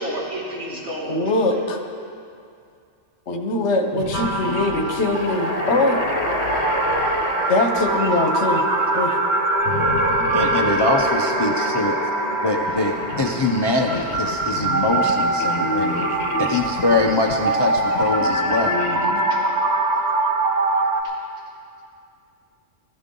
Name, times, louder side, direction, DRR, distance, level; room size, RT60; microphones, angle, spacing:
voice 1, 0.0-1.7 6.5-6.6 7.4-7.5 12.7-12.8 19.3-19.5 21.0-21.1, equal, 70° right, -7 dB, 3.4 m, -31 dB
voice 2, 1.1-1.8 3.3-6.0 7.5-8.6 8.9-9.2 15.6-16.1 18.6-19.2, left 2 dB, 70° left, 4 dB, 1.3 m, -22 dB
sound 1, 3.9-8.7 9.6-11.9 12.5-19.4, left 6 dB, 90° left, 1.0 m, -33 dB
sound 2, 4.1-21.0, right 2 dB, 40° right, 0.8 m, -24 dB
sound 3, 4.9-18.3, right 1 dB, 25° right, 2.0 m, -27 dB
voice 3, 10.3-12.0 12.4-16.0 16.4-18.8, left 2 dB, 30° left, 2 dB, 0.6 m, -23 dB
16.0 x 14.5 x 3.8 m, 2.4 s
omnidirectional pair, 1.2 m